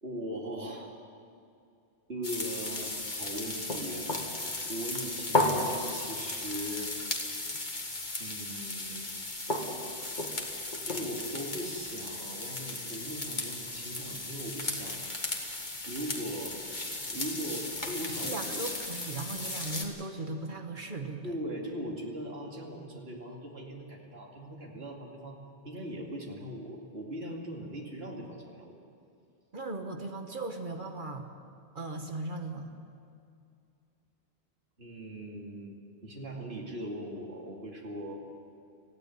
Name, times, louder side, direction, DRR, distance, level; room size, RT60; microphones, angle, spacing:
voice 1, 0.0-0.9 2.1-4.1 4.6-6.9 8.2-9.1 10.4-15.0 15.9-16.6 17.1-18.6 21.2-28.7 34.8-38.2, equal, 80° right, -1 dB, 2.8 m, -40 dB
sound 1, 2.2-19.8, left 2 dB, 50° left, 2.2 m, -35 dB
voice 2, 18.2-21.4 29.5-31.3 31.7-32.8, right 2 dB, 55° right, 5 dB, 1.6 m, -38 dB
19.0 x 15.5 x 9.5 m, 2.5 s
omnidirectional pair, 1.0 m